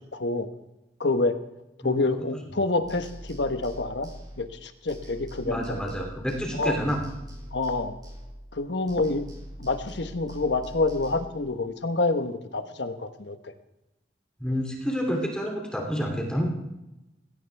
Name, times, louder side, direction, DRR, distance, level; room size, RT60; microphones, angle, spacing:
voice 1, 0.1-0.5 1.0-1.3 1.8-4.1 4.4-5.8 6.6-6.8 7.5-8.0 8.5-9.2 9.6-13.5, left 3 dB, 75° left, 8 dB, 1.3 m, -27 dB
sound 1, 2.8-4.6 4.9-8.6 8.9-11.3, equal, 25° right, 4.8 m, -43 dB
voice 2, 5.4-7.0 14.4-16.5, equal, 5° left, 0 dB, 3.0 m, -28 dB
20.5 x 17.0 x 3.5 m, 0.94 s
head